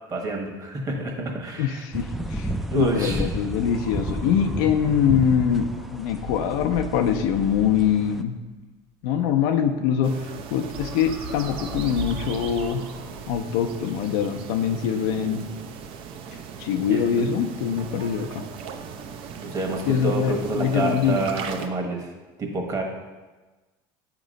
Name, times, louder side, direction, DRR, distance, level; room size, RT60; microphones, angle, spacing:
voice 1, 0.1-1.8 2.7-3.2 15.1-15.4 16.9-17.0 19.4-22.1 22.4-22.8, right 3 dB, 35° right, 1 dB, 1.3 m, -28 dB
voice 2, 1.6-8.4 9.0-10.2 10.5-12.9 13.3-15.4 16.6-18.4 19.9-21.2, left 8 dB, 80° left, 6 dB, 0.6 m, -23 dB
sound 1, 1.9-8.2, right 1 dB, ahead, 0.4 m, -32 dB
sound 2, 3.5-8.2 10.6-13.4, right 1 dB, 85° right, 1.1 m, -39 dB
sound 3, 10.0-21.7, right 6 dB, 60° right, 0.5 m, -38 dB
7.3 x 3.0 x 5.1 m, 1.2 s
supercardioid pair, 105°, 10 cm